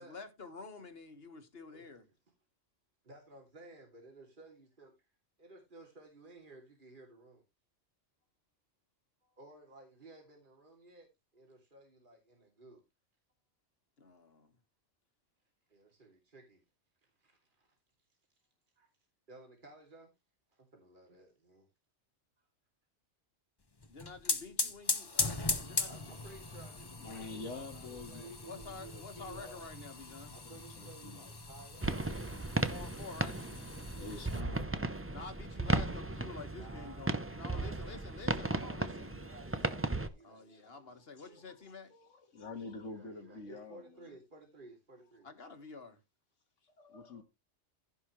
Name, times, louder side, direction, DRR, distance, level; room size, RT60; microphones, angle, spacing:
voice 1, 0.0-2.1 14.0-14.5 23.9-26.2 28.4-30.4 32.7-33.4 35.1-39.1 40.2-41.9 45.2-46.0, left 4 dB, 55° left, 1.8 m, -49 dB
voice 2, 3.0-4.9 5.4-7.4 9.2-12.8 15.7-16.6 17.2-17.7 18.8-18.9 19.3-20.1 20.5-21.7 25.9-28.5 30.3-32.2 33.9-35.0 36.5-38.0 38.6-41.0 41.2-41.5 42.9-45.3, right 2 dB, 45° right, 2.8 m, -56 dB
sound 1, 23.8-34.4, left 3 dB, 20° left, 0.9 m, -39 dB
voice 3, 27.0-29.7 30.0-31.3 34.0-34.6 37.3-37.5 39.6-40.0 40.5-41.3 41.6-44.2 46.6-47.2, left 3 dB, 85° left, 2.0 m, -48 dB
sound 2, 31.8-40.1, right 2 dB, 15° right, 0.6 m, -36 dB
15.5 x 5.4 x 3.1 m
omnidirectional pair, 1.2 m